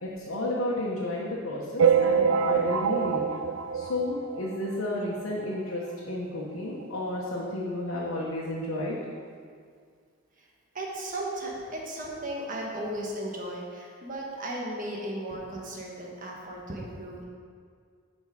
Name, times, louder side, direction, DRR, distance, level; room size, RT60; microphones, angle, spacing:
voice 1, 0.0-3.2 3.7-9.0, left 1 dB, 85° left, -5 dB, 1.1 m, -32 dB
sound 1, 1.8-4.6 5.1-5.2 5.4-5.6 5.8-5.9 6.8-6.9 7.4-7.5, right 6 dB, 75° right, 0.5 m, -25 dB
voice 2, 10.7-17.2, right 1 dB, 40° right, -2 dB, 1.4 m, -35 dB
8.5 x 5.4 x 5.0 m, 2.1 s
head